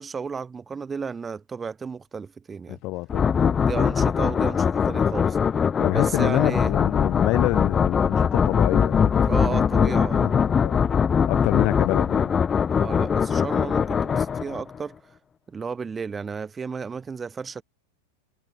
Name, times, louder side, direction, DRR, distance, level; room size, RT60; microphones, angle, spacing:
voice 1, 0.0-2.8 3.6-5.4 5.9-6.7 9.3-10.3 12.7-15.0 15.5-17.6, right 5 dB, 15° right, 4.0 m, -33 dB
voice 2, 2.7-3.9 5.8-10.9 11.3-12.3, left 21 dB, 40° left, 6.5 m, -27 dB
sound 1, 3.1-14.8, left 7 dB, 20° left, 1.2 m, -22 dB
figure-of-eight pair, 90°, 0 cm